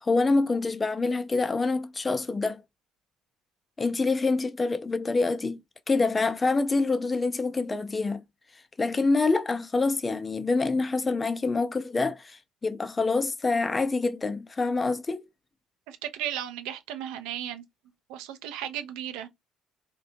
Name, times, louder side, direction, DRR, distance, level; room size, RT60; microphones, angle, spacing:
voice 1, 0.0-2.6 3.8-5.6 5.9-8.2 8.8-15.2, left 3 dB, 25° left, 0.4 m, -26 dB
voice 2, 15.9-17.6 18.1-19.3, right 10 dB, 65° right, 0.3 m, -35 dB
2.5 x 2.1 x 2.7 m
figure-of-eight pair, 50°, 0 cm